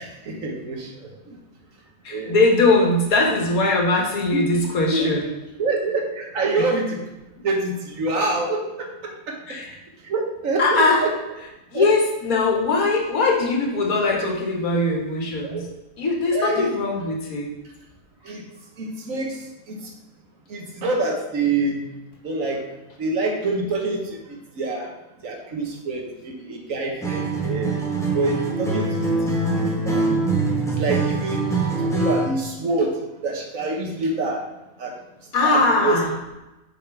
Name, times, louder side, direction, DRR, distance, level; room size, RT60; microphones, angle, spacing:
voice 1, 0.0-1.4 2.1-2.3 4.3-7.0 7.4-9.4 10.0-11.1 11.7-11.9 14.2-14.3 15.4-15.6 16.3-16.7 18.2-18.4 18.8-19.4 19.7-19.8 20.5-21.8 22.2-22.6 23.0-24.2 24.5-24.9 25.2-27.7 28.1-30.1 30.7-31.4 31.9-34.5 34.8-35.0 35.4-36.0, right 3 dB, 70° right, 1 dB, 1.5 m, -26 dB
voice 2, 2.0-5.2 6.5-6.6 9.5-9.8 10.6-11.0 11.7-15.7 16.0-17.5 35.3-36.1, left 3 dB, 80° left, 0 dB, 1.8 m, -21 dB
Acoustic guitar, 27.0-32.4, right 3 dB, ahead, 1.0 m, -23 dB
6.4 x 4.8 x 4.7 m, 1.0 s
omnidirectional pair, 1.5 m